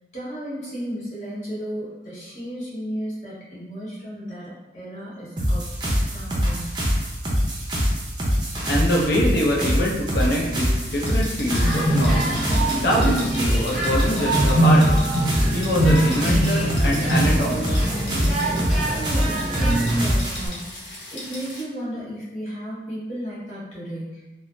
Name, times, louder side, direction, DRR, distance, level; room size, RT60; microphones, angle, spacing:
voice 1, 0.1-6.7 19.0-20.8 21.1-24.2, equal, 40° left, -8 dB, 1.0 m, -34 dB
sound 1, 5.4-20.5, equal, 25° right, 0.5 m, -24 dB
voice 2, 8.6-12.4 12.7-15.1 15.5-17.8, equal, 65° left, -3 dB, 0.6 m, -24 dB
sound 2, 10.8-21.6, left 1 dB, 85° left, 0.9 m, -38 dB
sound 3, 11.5-20.1, right 1 dB, ahead, 1.0 m, -23 dB
2.5 x 2.0 x 3.2 m, 1.1 s
head